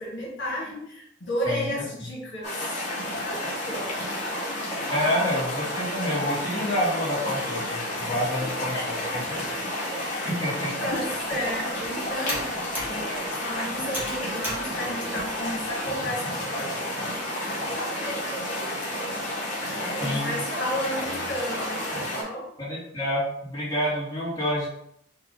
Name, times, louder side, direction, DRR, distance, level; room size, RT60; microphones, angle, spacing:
voice 1, 0.0-4.0 8.7-9.2 9.6-9.7 10.1-10.4 10.6-19.2 19.7-22.5, equal, 65° left, -5 dB, 1.4 m, -34 dB
sound 1, 2.4-22.2, left 1 dB, 40° left, 1.4 m, -31 dB
voice 2, 4.9-8.7 9.1-9.4 10.2-10.9 20.0-20.3 22.6-24.7, equal, 20° left, -9 dB, 1.7 m, -28 dB
Computer keyboard, 10.8-16.0, equal, 10° right, 1.2 m, -39 dB
4.5 x 2.5 x 3.9 m, 0.73 s
head